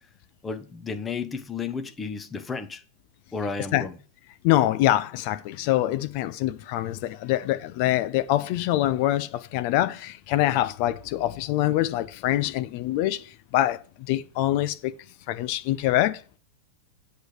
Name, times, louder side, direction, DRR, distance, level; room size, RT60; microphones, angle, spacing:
voice 1, 0.4-2.8 3.3-3.9, left 5 dB, 15° left, 0.9 m, -32 dB
voice 2, 4.4-14.9 15.3-16.4, left 14 dB, 55° left, 0.6 m, -25 dB
8.2 x 3.4 x 6.4 m
hypercardioid pair, 115°, 0 cm